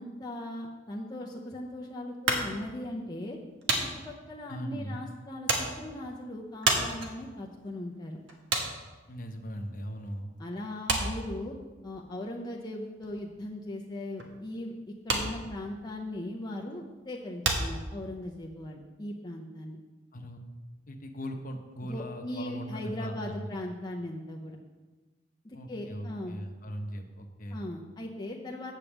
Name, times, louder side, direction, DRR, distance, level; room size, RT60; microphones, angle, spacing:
voice 1, 0.0-3.4 4.0-8.2 10.4-11.5 11.8-14.7 15.0-19.8 21.8-24.6 25.4-26.4 27.5-28.7, left 1 dB, 20° left, -2 dB, 0.6 m, -39 dB
sound 1, 2.3-10.1 10.4-18.4, right 3 dB, 75° right, 1.3 m, -33 dB
voice 2, 4.5-5.0 9.1-10.3 20.1-20.4 20.9-23.5 25.5-27.7, equal, 45° left, 4 dB, 0.9 m, -39 dB
8.3 x 5.2 x 7.2 m, 1.3 s
head